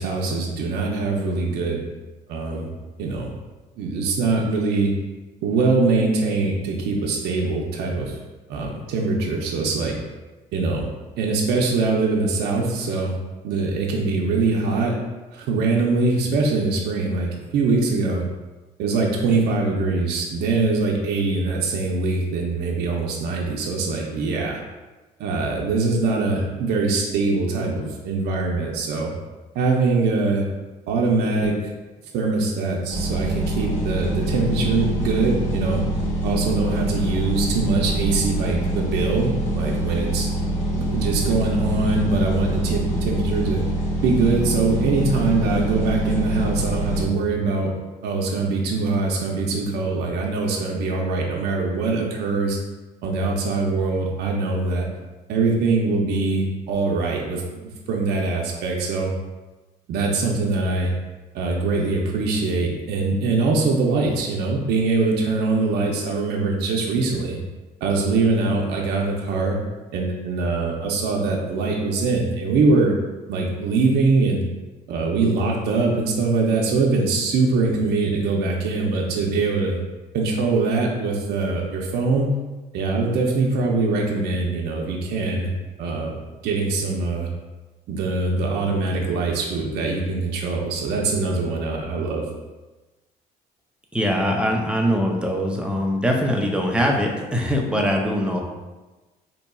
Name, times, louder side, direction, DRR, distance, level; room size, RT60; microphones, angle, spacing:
voice 1, 0.0-1.8 2.3-2.7 3.0-3.3 3.8-4.9 5.4-8.2 8.5-10.0 10.5-10.9 11.1-13.1 13.4-15.0 15.3-18.2 18.8-24.6 25.2-29.1 29.5-30.4 30.9-31.5 32.1-35.8 36.2-40.3 40.8-43.6 44.0-47.7 48.0-52.6 53.0-54.9 55.3-59.1 59.9-60.9 61.3-67.4 67.8-69.6 69.9-72.9 73.3-74.4 74.9-79.8 80.1-82.3 82.7-85.5 85.8-86.1 86.4-87.3 87.9-92.2, right 3 dB, 75° right, -1 dB, 0.6 m, -23 dB
sound 1, 32.9-47.1, right 1 dB, 40° left, 1.1 m, -25 dB
voice 2, 93.9-98.4, equal, 5° right, 0 dB, 0.5 m, -22 dB
4.1 x 2.9 x 2.3 m, 1.2 s
cardioid pair, 110°, 17 cm